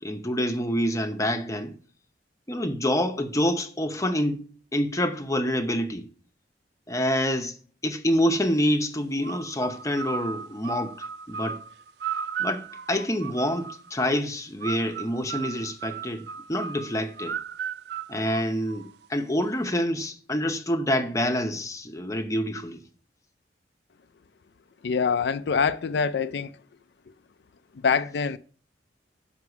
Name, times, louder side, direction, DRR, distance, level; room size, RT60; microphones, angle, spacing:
voice 1, 0.0-1.8 2.5-4.4 4.7-6.1 6.9-7.6 7.8-11.6 12.4-17.4 18.1-22.8, equal, 20° left, 0.8 m, -27 dB
sound 1, 9.2-13.9 14.6-19.1, right 7 dB, 60° right, 0.3 m, -36 dB
voice 2, 24.8-26.6 27.8-28.4, left 5 dB, 65° left, 0.4 m, -25 dB
7.9 x 5.9 x 5.9 m
head